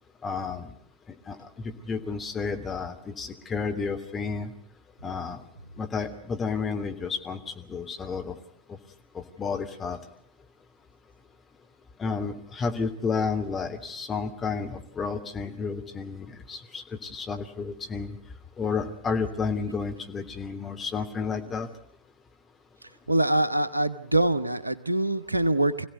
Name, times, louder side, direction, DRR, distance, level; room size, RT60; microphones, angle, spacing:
voice 1, 0.2-0.7 1.3-4.5 5.0-5.4 5.8-8.4 8.7-8.8 9.1-10.0 12.0-18.2 18.6-21.7, left 5 dB, 20° left, 4 dB, 3.2 m, -31 dB
voice 2, 23.1-25.9, right 1 dB, 85° right, 14 dB, 1.1 m, -24 dB
26.5 x 17.0 x 9.6 m, 0.65 s
figure-of-eight pair, 90°, 0 cm